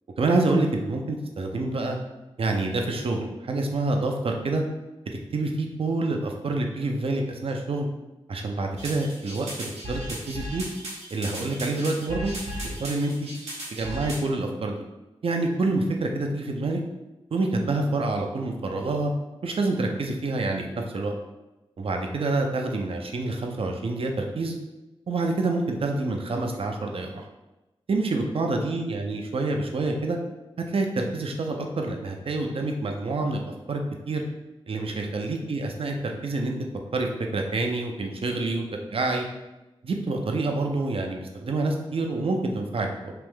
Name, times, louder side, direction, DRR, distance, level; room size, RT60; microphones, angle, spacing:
voice 1, 0.2-2.0 2.4-4.6 5.3-7.9 8.3-10.0 10.3-10.6 11.1-12.3 12.6-13.3 13.7-14.8 15.2-16.8 17.3-19.1 19.4-21.1 21.8-24.5 25.1-27.2 27.9-30.2 30.7-33.4 33.7-34.2 34.7-36.5 36.9-39.2 39.8-43.1, right 2 dB, 60° right, 2 dB, 0.6 m, -27 dB
sound 1, 8.8-14.2, equal, 90° right, 1.0 m, -36 dB
3.4 x 2.5 x 3.5 m, 1.0 s
cardioid pair, 40°, 11 cm